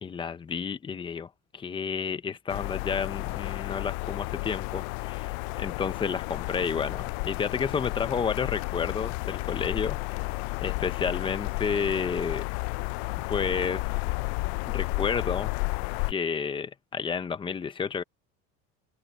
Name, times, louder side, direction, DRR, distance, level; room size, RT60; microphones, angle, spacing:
voice 1, 0.0-10.0 10.6-12.4 13.3-13.9 14.6-15.5 16.1-18.0, left 6 dB, 15° left, 0.8 m, -31 dB
sound 1, 2.5-16.1, left 26 dB, 75° left, 0.5 m, -32 dB
Applause, 6.2-15.5, left 18 dB, 55° left, 4.6 m, -52 dB
cardioid pair, 160°, 32 cm